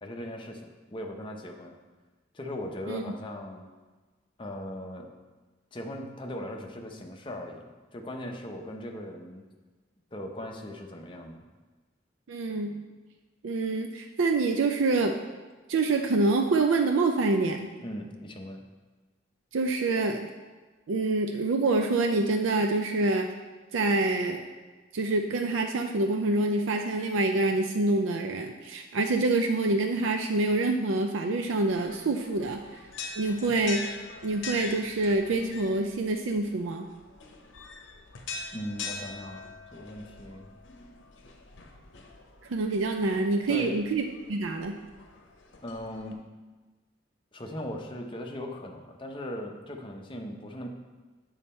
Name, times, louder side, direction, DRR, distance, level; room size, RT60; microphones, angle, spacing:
voice 1, 0.0-1.7 2.3-3.7 4.4-5.1 5.7-7.7 7.9-9.4 10.1-11.4 17.8-18.6 38.5-40.5 43.5-43.8 45.6-46.3 47.3-50.7, left 1 dB, 25° left, 2 dB, 0.7 m, -39 dB
voice 2, 12.3-12.8 13.4-15.2 15.7-17.7 19.5-20.3 20.9-23.3 23.7-24.4 24.9-32.6 33.2-33.8 34.2-36.9 42.5-44.8, right 2 dB, 80° right, 4 dB, 0.5 m, -26 dB
sound 1, 31.7-46.1, left 4 dB, 70° left, 0.8 m, -43 dB
7.2 x 5.6 x 4.3 m, 1.3 s
head